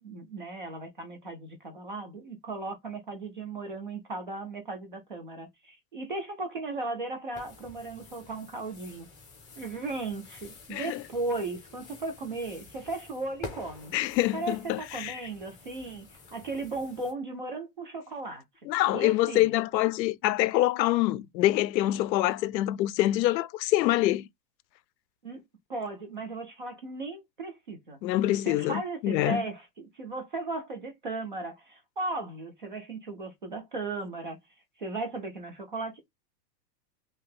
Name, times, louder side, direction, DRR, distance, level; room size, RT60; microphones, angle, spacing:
voice 1, 0.0-9.1 9.6-13.9 14.3-18.4 18.9-19.5 25.2-25.4 25.7-28.0 28.4-34.4 34.8-36.1, right 3 dB, 35° right, 0.4 m, -36 dB
sound 1, 7.3-17.1, left 3 dB, 10° left, 0.6 m, -48 dB
voice 2, 10.7-11.0 13.9-15.2 18.7-24.3 28.0-29.4, left 15 dB, 90° left, 0.6 m, -25 dB
2.8 x 2.7 x 3.6 m
supercardioid pair, 175°, 50 cm